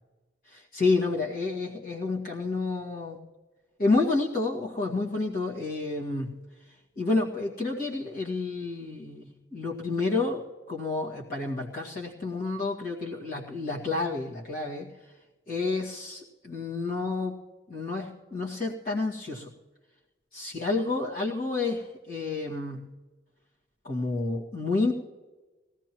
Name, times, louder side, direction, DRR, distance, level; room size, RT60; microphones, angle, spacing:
voice 1, 0.5-3.2 3.8-6.4 7.0-10.4 10.7-14.9 15.5-17.4 17.7-19.5 20.3-22.9 23.8-24.9, left 3 dB, 50° left, -5 dB, 2.0 m, -29 dB
20.5 x 16.5 x 3.1 m, 1.2 s
head